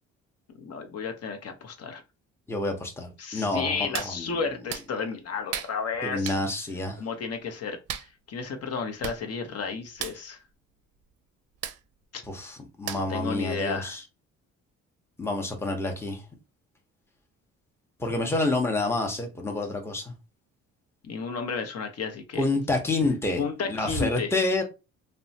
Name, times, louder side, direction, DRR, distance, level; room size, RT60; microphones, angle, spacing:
voice 1, 0.6-2.0 3.2-6.3 7.0-7.8 8.3-10.4 12.1-12.2 13.1-14.0 21.0-22.4 23.4-24.3, left 5 dB, 55° left, 0.8 m, -32 dB
voice 2, 2.5-4.4 6.0-7.0 12.3-14.0 15.2-16.2 18.0-20.1 22.3-24.6, left 2 dB, 10° left, 0.7 m, -28 dB
Hands, 3.9-4.1 4.7-4.9 5.5-5.7 6.2-6.4 7.9-8.1 8.8-8.9 9.0-9.2 9.5-9.6 9.9-10.2 11.6-11.8 12.9-13.2 13.7-13.8, right 9 dB, 55° right, 0.5 m, -34 dB
2.9 x 2.2 x 2.7 m
cardioid pair, 90°, 30 cm